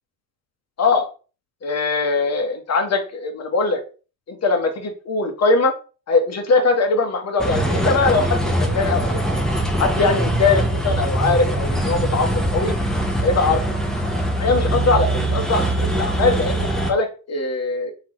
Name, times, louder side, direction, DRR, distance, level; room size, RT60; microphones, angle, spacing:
voice 1, 1.6-3.8 4.3-5.7 6.1-9.4 9.8-12.7 13.2-13.6 14.4-17.9, left 3 dB, 30° left, 4 dB, 1.1 m, -21 dB
sound 1, 7.4-16.9, right 1 dB, ahead, 0.8 m, -22 dB
3.5 x 2.9 x 3.0 m, 0.35 s
hypercardioid pair, 70°, 50 cm